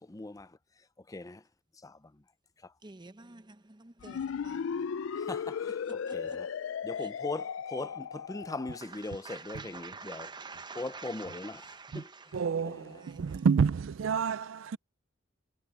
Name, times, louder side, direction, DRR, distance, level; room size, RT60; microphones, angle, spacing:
voice 1, 0.1-0.5 1.1-1.4 1.8-2.0 2.6-2.7 5.2-6.5 6.8-10.3 10.7-11.7 11.9-12.1 12.6-13.0, left 2 dB, 20° left, 0.5 m, -40 dB
voice 2, 2.8-4.7 6.0-6.4 7.0-7.1 8.8-12.4 12.9-13.5, right 4 dB, 25° right, 0.8 m, -48 dB
sound 1, 4.0-8.8, left 6 dB, 80° left, 0.4 m, -36 dB
voice 3, 12.3-14.8, right 6 dB, 80° right, 0.4 m, -29 dB
head